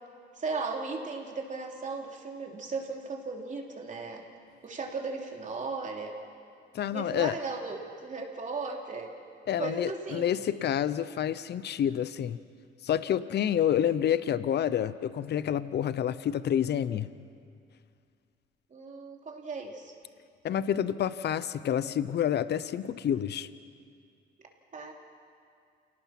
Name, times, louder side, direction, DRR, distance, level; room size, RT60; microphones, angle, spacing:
voice 1, 0.3-4.2 4.6-6.1 6.9-9.1 9.6-10.2 18.7-19.9 24.7-24.9, right 4 dB, 40° right, 0 dB, 3.2 m, -36 dB
voice 2, 6.7-7.4 9.5-12.4 12.8-17.1 20.4-23.5, left 10 dB, 55° left, 15 dB, 0.7 m, -28 dB
28.0 x 18.5 x 5.9 m, 2.3 s
cardioid pair, 90°, 20 cm